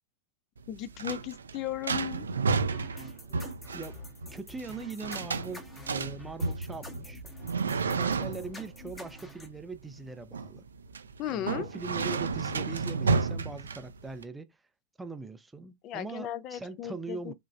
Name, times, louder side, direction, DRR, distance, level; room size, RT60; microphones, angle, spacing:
sound 1, 0.6-14.2, right 4 dB, 70° right, 0.4 m, -32 dB
voice 1, 0.7-2.3 11.2-11.7 15.8-17.3, left 12 dB, 40° left, 0.5 m, -36 dB
sound 2, 2.7-9.5, left 1 dB, 15° left, 1.0 m, -47 dB
voice 2, 4.3-7.2 7.9-10.7 11.3-14.6 15.0-17.3, right 3 dB, 10° right, 0.5 m, -41 dB
4.8 x 3.1 x 2.4 m
figure-of-eight pair, 90°, 0 cm